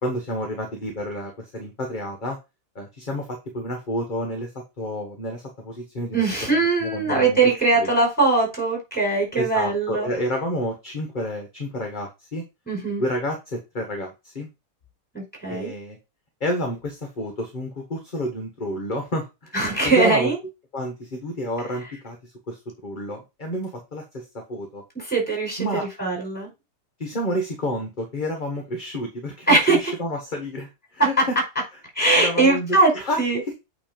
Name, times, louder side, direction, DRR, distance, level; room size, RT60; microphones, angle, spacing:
voice 1, 0.0-2.4 2.7-6.2 6.8-7.4 7.8-7.9 9.4-12.4 13.0-14.5 15.5-16.0 16.4-19.5 19.8-20.3 20.7-24.8 25.6-25.9 27.0-31.4 32.2-33.2 33.5-33.6, equal, 30° left, 3 dB, 1.4 m, -29 dB
voice 2, 6.1-10.1 12.7-13.0 15.1-15.7 19.5-20.4 25.0-26.5 29.5-29.8 31.2-31.3 32.0-32.9 33.2-33.4, right 3 dB, 5° left, -1 dB, 5.2 m, -21 dB
8.6 x 3.3 x 5.2 m, 0.25 s
omnidirectional pair, 1.7 m